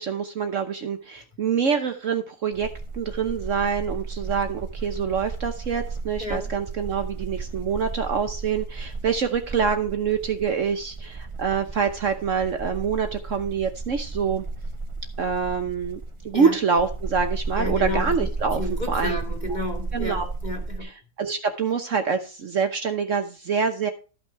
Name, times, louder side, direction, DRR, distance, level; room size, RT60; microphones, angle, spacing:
voice 1, 0.0-2.7 2.9-14.4 15.2-16.0 16.2-18.6 18.9-19.2 19.9-20.3 20.8-23.9, right 6 dB, 55° right, 7 dB, 1.2 m, -26 dB
sound 1, 2.5-20.8, right 3 dB, 30° right, 0.6 m, -33 dB
voice 2, 17.6-18.3 18.6-20.9, left 1 dB, 25° left, 3 dB, 2.6 m, -31 dB
13.5 x 5.8 x 4.6 m, 0.35 s
omnidirectional pair, 1.7 m